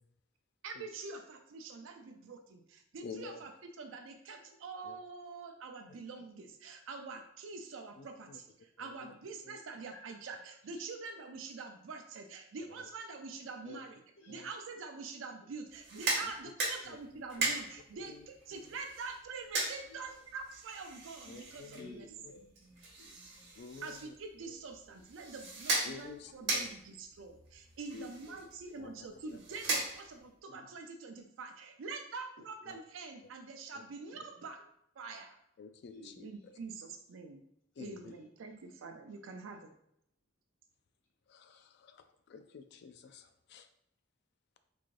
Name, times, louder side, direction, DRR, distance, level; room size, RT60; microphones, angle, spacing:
voice 1, 0.6-14.0 14.3-18.2 18.5-22.1 23.8-34.6 35.0-35.4 36.2-37.4 37.8-39.7, right 4 dB, 85° right, 5 dB, 0.4 m, -45 dB
voice 2, 3.0-3.4 4.9-5.0 8.0-8.4 9.0-9.1 9.5-9.6 13.7-13.8 14.3-14.5 17.4-17.5 18.1-18.2 18.5-18.6 21.3-21.9 23.6-24.1 24.4-24.5 25.9-26.7 28.8-28.9 29.7-29.8 32.7-32.8 35.6-36.3 37.8-37.9 41.3-42.0 42.3-43.7, left 5 dB, 60° left, 9 dB, 0.3 m, -50 dB
sound 1, 15.7-30.4, right 3 dB, 60° right, 1.1 m, -39 dB
voice 3, 21.7-23.6 24.9-25.0 27.9-28.7 29.2-29.3 34.1-34.2 35.9-36.6 37.7-38.1 38.5-38.6, left 2 dB, 75° left, -1 dB, 1.0 m, -54 dB
3.8 x 3.1 x 2.5 m, 0.74 s
head